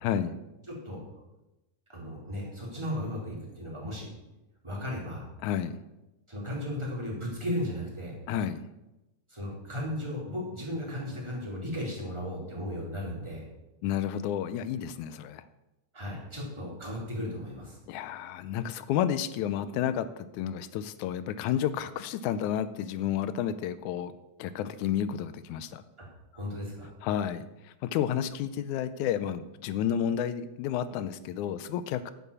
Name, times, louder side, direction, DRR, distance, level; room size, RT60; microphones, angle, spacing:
voice 1, 0.0-0.4 5.4-5.8 8.3-8.6 13.8-15.4 17.9-24.1 24.4-25.8 27.0-32.1, left 9 dB, 90° left, 14 dB, 2.1 m, -31 dB
voice 2, 0.7-1.0 1.9-4.1 4.6-5.3 6.3-8.1 9.3-13.4 15.9-17.8 26.3-26.9, left 1 dB, 10° right, -4 dB, 3.4 m, -35 dB
9.5 x 8.3 x 7.1 m, 0.98 s
omnidirectional pair, 3.4 m